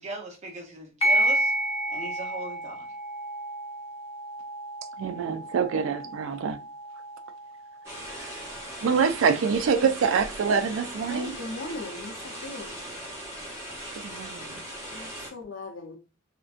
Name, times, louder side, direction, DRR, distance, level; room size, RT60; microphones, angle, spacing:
voice 1, 0.0-1.5 1.9-2.9, right 2 dB, 35° right, 0.8 m, -39 dB
sound 1, 1.0-10.0, right 1 dB, 30° left, 0.5 m, -31 dB
voice 2, 5.0-6.6 8.2-8.3 8.8-11.3 14.0-14.6, right 6 dB, 70° right, 0.3 m, -25 dB
sound 2, 7.8-15.3, equal, 15° right, 1.1 m, -39 dB
voice 3, 11.1-12.7 14.9-16.0, left 2 dB, 70° left, 0.7 m, -38 dB
2.5 x 2.1 x 2.4 m
head